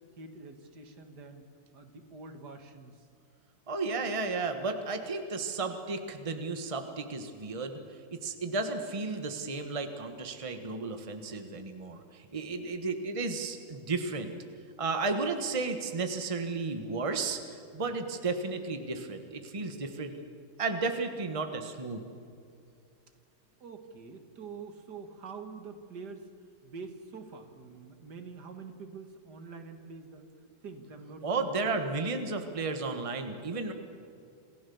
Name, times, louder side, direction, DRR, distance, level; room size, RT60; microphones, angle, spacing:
voice 1, 0.2-1.5 1.7-3.1 23.6-26.3 26.6-30.3 30.6-31.8, right 4 dB, 70° right, 6 dB, 2.2 m, -46 dB
voice 2, 3.7-7.8 8.1-14.3 14.8-20.1 20.6-22.0 31.2-33.7, right 3 dB, 20° right, 6 dB, 1.3 m, -33 dB
27.5 x 15.5 x 7.1 m, 2.5 s
omnidirectional pair, 1.9 m